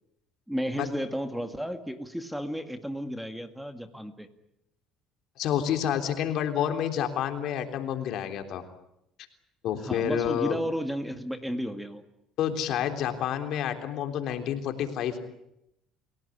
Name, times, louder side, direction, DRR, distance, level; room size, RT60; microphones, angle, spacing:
voice 1, 0.5-4.3 9.8-12.0, equal, ahead, 8 dB, 2.1 m, -33 dB
voice 2, 5.4-8.6 9.6-10.6 12.4-15.2, left 9 dB, 65° left, 6 dB, 3.5 m, -29 dB
29.5 x 17.5 x 10.0 m, 0.83 s
cardioid pair, 105°, 0 cm